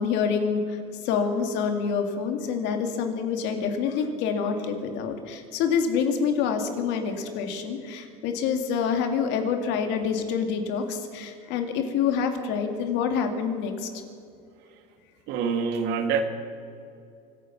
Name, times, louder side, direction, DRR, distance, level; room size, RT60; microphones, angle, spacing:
voice 1, 0.0-13.9, left 6 dB, 70° left, 5 dB, 2.3 m, -27 dB
voice 2, 15.3-16.2, right 6 dB, 70° right, 7 dB, 1.9 m, -25 dB
25.5 x 9.3 x 5.9 m, 2.5 s
supercardioid pair, 115°, 19 cm